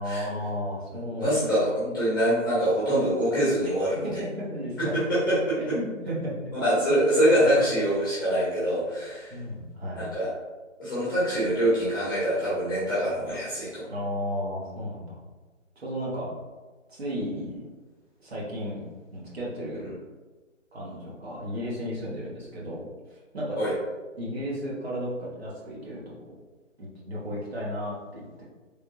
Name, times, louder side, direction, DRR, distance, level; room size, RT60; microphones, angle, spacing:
voice 1, 0.0-1.4 3.6-3.7 4.0-4.9 5.6-6.3 7.4-7.7 9.3-10.0 13.9-15.2 15.8-16.3 16.9-17.7 18.2-18.8 19.1-19.9 20.7-22.8 23.1-23.6 24.2-26.4 26.8-28.4, equal, 50° right, -6 dB, 1.1 m, -34 dB
voice 2, 1.2-4.0 4.8-5.7 6.6-9.4 9.9-10.3 10.8-13.9 19.8-19.9 23.6-23.7, equal, 15° left, -10 dB, 0.9 m, -24 dB
3.3 x 2.2 x 3.0 m, 1.3 s
figure-of-eight pair, 160°, 39 cm